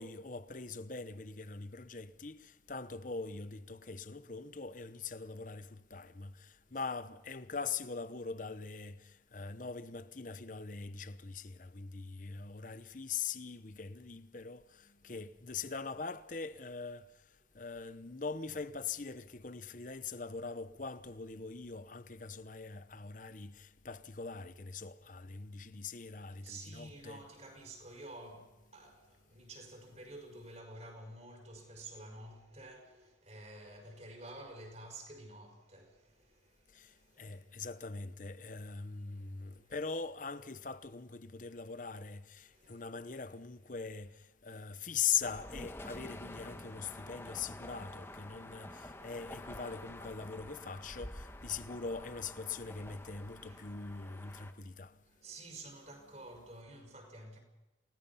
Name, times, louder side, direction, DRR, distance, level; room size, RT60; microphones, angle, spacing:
voice 1, 0.0-27.2 36.7-55.0, left 5 dB, 45° left, 0.9 m, -42 dB
voice 2, 26.4-37.6 39.1-39.7 42.5-42.9 44.4-44.9 46.9-47.0 47.5-47.6 48.5-49.2 50.6-50.7 51.5-51.8 53.4-54.2 54.5-54.6 55.0-57.4, right 2 dB, 35° right, 5.5 m, -52 dB
sound 1, 45.2-54.5, left 1 dB, 15° left, 1.4 m, -49 dB
28.5 x 18.5 x 5.7 m
head